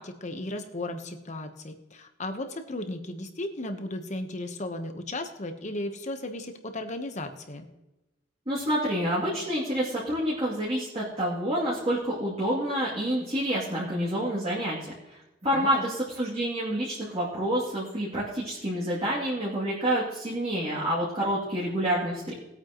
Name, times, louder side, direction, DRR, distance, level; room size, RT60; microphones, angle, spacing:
voice 1, 0.0-7.7 15.5-15.9, left 1 dB, 40° left, 7 dB, 1.1 m, -35 dB
voice 2, 8.5-22.3, equal, 30° right, -8 dB, 2.8 m, -28 dB
20.0 x 9.0 x 3.1 m, 1.0 s
head